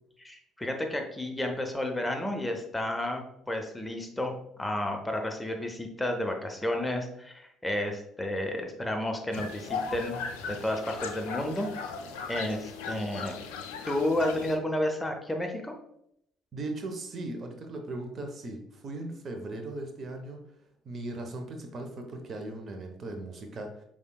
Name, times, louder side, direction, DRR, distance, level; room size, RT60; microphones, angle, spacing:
voice 1, 0.2-4.3 4.6-10.2 10.5-11.7 12.3-13.4 13.8-15.7, left 1 dB, 10° left, 3 dB, 0.7 m, -31 dB
sound 1, 9.3-14.6, left 5 dB, 75° left, 0.4 m, -37 dB
voice 2, 16.5-20.4 20.8-23.8, right 2 dB, 40° right, 3 dB, 0.7 m, -38 dB
5.3 x 3.6 x 2.3 m, 0.75 s
figure-of-eight pair, 50°, 0 cm